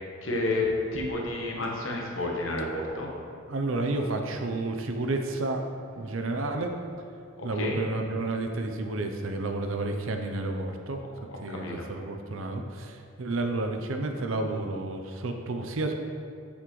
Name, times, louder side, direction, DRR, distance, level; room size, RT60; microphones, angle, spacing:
voice 1, 0.2-0.7 0.9-3.1 7.4-7.8 11.5-11.9, left 2 dB, 80° left, -1 dB, 1.2 m, -30 dB
voice 2, 3.5-5.6 6.0-6.7 7.4-11.0 11.4-15.9, right 2 dB, 85° right, 5 dB, 0.6 m, -31 dB
7.8 x 6.1 x 3.2 m, 2.4 s
head